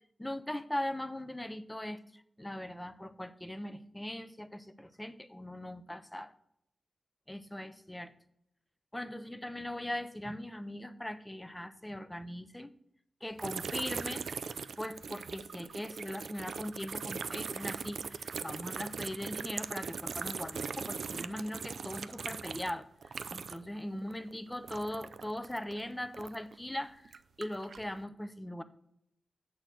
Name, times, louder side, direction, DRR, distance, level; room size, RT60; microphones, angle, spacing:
voice 1, 0.2-6.3 7.3-8.1 8.9-12.7 13.2-14.3 14.8-28.6, left 1 dB, 10° left, 12 dB, 0.5 m, -40 dB
sound 1, 13.4-23.8 24.0-26.5 27.1-27.9, right 5 dB, 85° right, 0.3 m, -40 dB
7.8 x 4.2 x 6.0 m, 0.75 s
wide cardioid pair, 140°, 0 cm